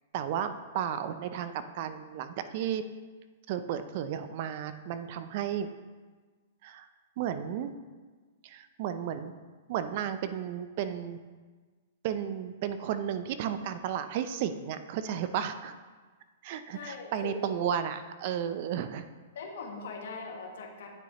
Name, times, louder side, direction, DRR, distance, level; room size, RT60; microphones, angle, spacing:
voice 1, 0.1-2.8 3.5-5.7 6.6-6.9 7.2-7.7 8.4-9.3 9.7-11.2 12.0-15.8 16.4-19.1, right 9 dB, 50° right, 11 dB, 0.5 m, -33 dB
voice 2, 16.7-17.6 19.3-20.9, left 4 dB, 70° left, 2 dB, 1.4 m, -40 dB
9.0 x 7.1 x 3.0 m, 1.4 s
hypercardioid pair, 125°, 0 cm